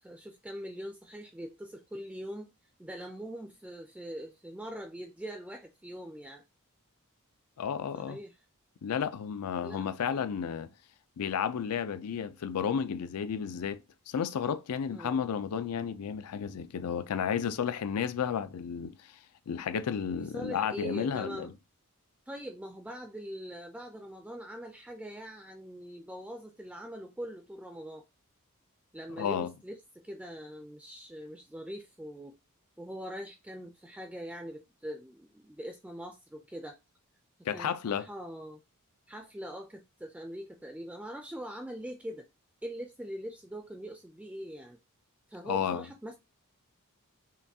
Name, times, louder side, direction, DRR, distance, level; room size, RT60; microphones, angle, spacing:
voice 1, 0.0-2.5 2.8-6.4 7.9-8.4 9.6-9.8 14.9-15.2 20.2-21.5 22.3-28.0 28.9-32.4 32.8-36.7 37.5-38.6 39.1-42.3 42.6-44.8 45.3-46.2, equal, 5° right, 0.3 m, -42 dB
voice 2, 7.6-8.2 8.8-10.7 11.2-19.0 19.5-21.5 29.2-29.5 37.4-38.1 45.4-45.9, left 7 dB, 90° left, 0.4 m, -32 dB
5.7 x 2.3 x 2.7 m
head